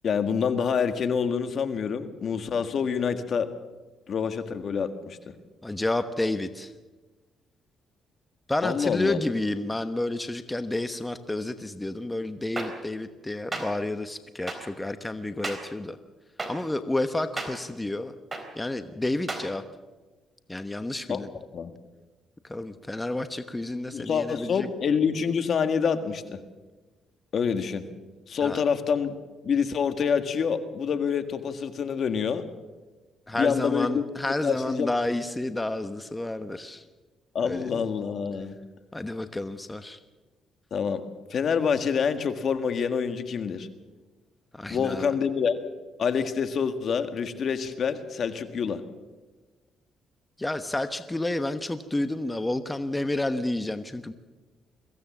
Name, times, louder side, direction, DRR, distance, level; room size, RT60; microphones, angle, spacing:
voice 1, 0.0-3.5 4.1-5.2 8.6-9.2 21.1-21.2 21.5-21.7 23.9-26.4 27.3-27.8 28.3-29.2 29.4-32.4 33.3-34.1 34.4-34.9 37.3-38.6 40.7-41.0 41.3-43.7 44.7-45.6 46.0-48.8, left 6 dB, 55° left, 9 dB, 1.7 m, -26 dB
voice 2, 5.6-6.7 8.5-16.0 16.5-18.1 18.6-19.6 20.5-21.3 22.4-24.7 28.4-28.6 33.3-36.8 37.4-37.9 38.9-40.0 44.5-45.1 50.4-54.1, left 2 dB, 15° left, 10 dB, 1.1 m, -30 dB
sound 1, 12.6-12.7 13.5-13.6 14.5-14.6 15.4-15.6 16.4-16.5 17.4-17.5 18.3-18.4 19.3-19.4, right 2 dB, 20° right, 3.9 m, -31 dB
22.5 x 16.0 x 7.3 m, 1.2 s
cardioid pair, 90°, 0 cm